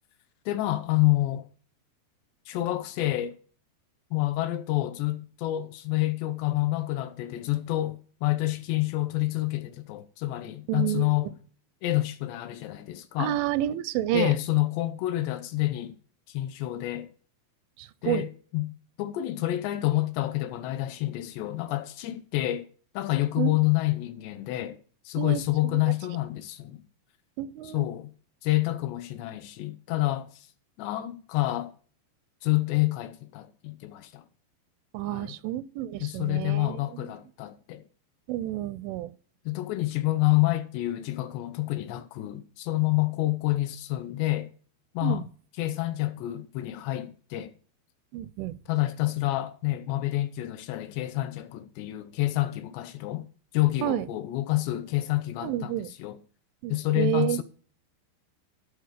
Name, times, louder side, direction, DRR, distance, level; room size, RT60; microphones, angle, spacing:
voice 1, 0.5-1.5 2.5-3.3 4.1-11.3 11.8-13.4 14.1-15.9 16.3-17.1 18.0-18.7 19.0-22.7 22.9-24.8 25.1-26.9 27.7-28.1 28.4-30.5 30.8-31.7 32.4-34.2 35.1-35.4 36.0-37.8 39.5-44.5 44.9-45.2 45.6-47.5 48.7-53.3 53.5-55.7 56.0-56.2 56.7-57.4, left 17 dB, 80° left, 2.6 m, -28 dB
voice 2, 10.7-11.3 13.2-14.3 17.8-18.2 23.4-23.6 25.2-25.8 27.4-27.9 34.9-37.1 38.3-39.1 45.0-45.3 48.1-48.6 53.8-54.1 55.4-55.9 56.6-57.4, right 13 dB, 85° right, 3.0 m, -30 dB
13.5 x 4.7 x 6.5 m
omnidirectional pair, 5.4 m